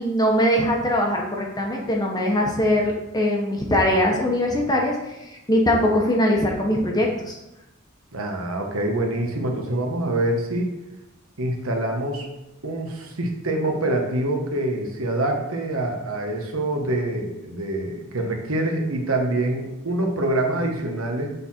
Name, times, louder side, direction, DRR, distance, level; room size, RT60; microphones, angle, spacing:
voice 1, 0.0-7.4, left 1 dB, 20° left, -1 dB, 0.8 m, -21 dB
voice 2, 8.1-10.7 11.4-12.3 12.6-21.3, right 1 dB, 80° right, 2 dB, 1.2 m, -25 dB
6.9 x 4.0 x 4.3 m, 0.93 s
head